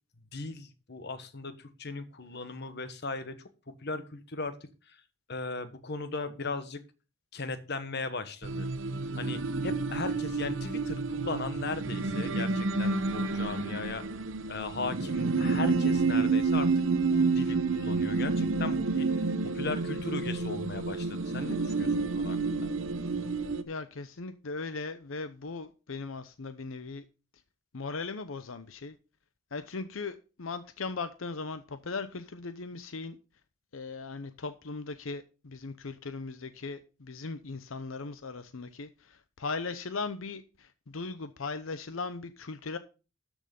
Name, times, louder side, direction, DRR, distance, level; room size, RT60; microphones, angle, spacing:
voice 1, 0.3-3.3 3.8-4.6 4.9-5.0 5.3-6.8 7.3-8.7 9.2-14.0 14.5-16.7 17.1-19.2 19.5-22.7, left 3 dB, 55° left, 1.3 m, -37 dB
sound 1, 8.4-23.6, right 3 dB, 70° right, 0.9 m, -29 dB
voice 2, 23.7-27.0 27.7-29.0 29.5-33.2 33.7-42.8, left 4 dB, 85° left, 0.8 m, -38 dB
13.0 x 6.4 x 5.3 m
head